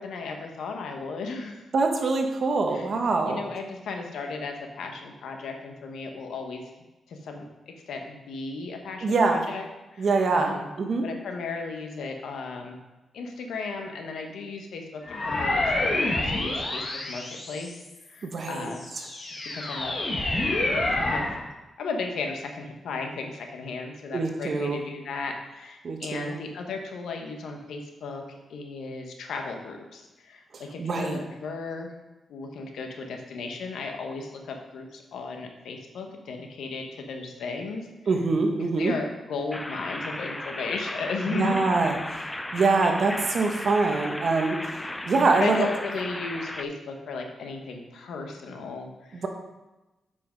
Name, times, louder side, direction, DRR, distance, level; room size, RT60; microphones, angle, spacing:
voice 1, 0.0-1.7 2.7-2.9 3.3-6.6 7.1-9.7 9.9-10.7 11.0-12.8 13.1-17.8 18.1-18.8 19.5-19.9 20.7-21.3 21.8-31.9 32.3-37.9 38.8-41.7 45.2-49.2, left 4 dB, 90° left, 3 dB, 1.2 m, -35 dB
voice 2, 1.7-3.4 9.0-9.5 10.0-10.5 10.8-11.0 18.2-18.7 24.1-24.8 25.8-26.4 30.5-31.2 38.1-38.9 41.3-42.0 42.5-45.7 49.1-49.3, right 3 dB, 55° right, 3 dB, 1.2 m, -24 dB
sound 1, 15.0-18.0 18.6-21.4, left 2 dB, 40° left, 1.6 m, -28 dB
sound 2, 39.5-46.6, left 1 dB, 10° left, 0.4 m, -35 dB
7.7 x 5.7 x 5.2 m, 1.1 s
cardioid pair, 110°, 0 cm